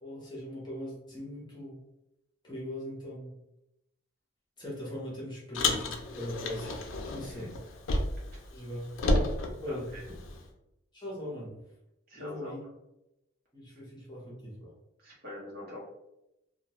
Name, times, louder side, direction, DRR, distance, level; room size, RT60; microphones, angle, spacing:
voice 1, 0.0-1.8 2.4-3.3 4.6-6.8 7.1-7.4 8.5-8.8 9.6-9.9 10.9-11.6 12.1-12.7 13.5-14.8, left 1 dB, 20° left, -6 dB, 0.8 m, -40 dB
Car, 5.5-8.4 8.6-10.4, left 2 dB, 70° left, 0.4 m, -31 dB
voice 2, 9.7-10.0 12.1-12.6 15.0-15.8, left 1 dB, 50° right, -5 dB, 0.9 m, -43 dB
2.2 x 2.2 x 2.9 m, 0.88 s
head